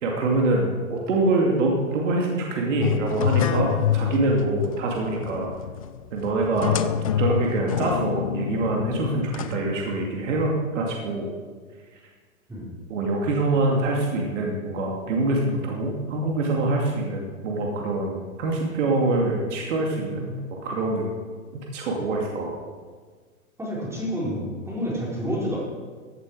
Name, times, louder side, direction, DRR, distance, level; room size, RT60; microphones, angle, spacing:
voice 1, 0.0-5.5 6.1-6.8 7.2-11.3 12.9-21.1 21.7-22.5, right 2 dB, 60° right, -1 dB, 2.6 m, -25 dB
sound 1, 2.8-10.4, left 10 dB, 30° left, 0.3 m, -27 dB
voice 2, 23.6-25.6, equal, 5° right, -5 dB, 4.4 m, -29 dB
15.5 x 8.8 x 4.9 m, 1.5 s
hypercardioid pair, 125°, 42 cm